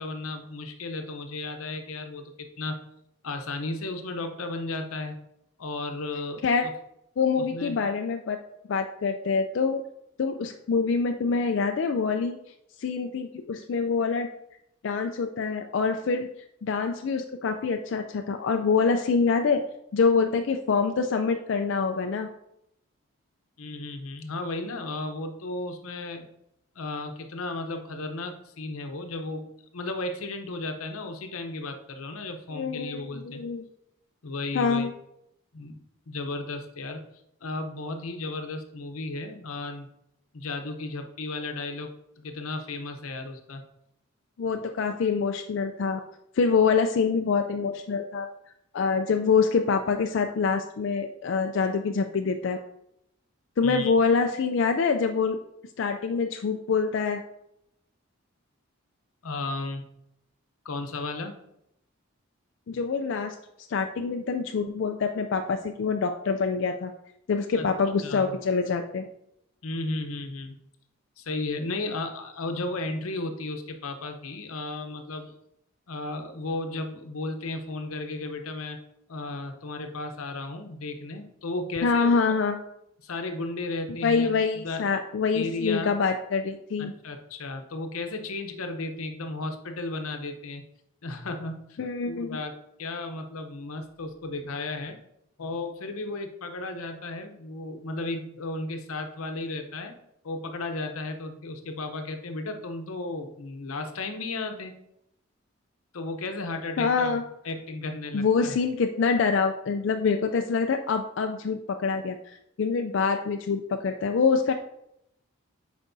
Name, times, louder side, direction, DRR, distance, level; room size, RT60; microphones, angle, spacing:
voice 1, 0.0-2.8 3.2-5.1 5.6-6.7 7.4-7.9 23.6-26.3 26.7-29.5 29.7-33.4 34.2-34.9 35.5-37.0 37.4-39.9 40.3-41.9 42.2-43.6 53.6-53.9 59.2-59.8 60.6-61.4 67.5-67.7 68.0-68.4 69.6-70.6 71.2-75.3 75.9-78.8 79.1-82.2 83.0-84.9 85.3-86.0 86.8-90.6 91.0-91.8 92.1-92.5 92.8-95.0 95.4-99.9 100.2-104.7 105.9-108.6, left 2 dB, 90° left, 6 dB, 0.8 m, -34 dB
voice 2, 7.2-8.4 8.7-9.8 10.2-12.4 12.8-14.3 14.8-16.3 16.6-19.6 19.9-22.3 32.5-33.6 34.5-34.9 44.4-46.0 46.3-48.3 48.7-52.6 53.6-55.4 55.8-57.2 62.7-63.4 63.7-66.9 67.3-69.1 81.8-82.6 84.0-86.9 91.8-92.4 106.8-107.2 108.1-112.2 112.6-114.5, left 5 dB, 60° left, 5 dB, 0.4 m, -25 dB
8.0 x 5.1 x 2.6 m, 0.78 s
head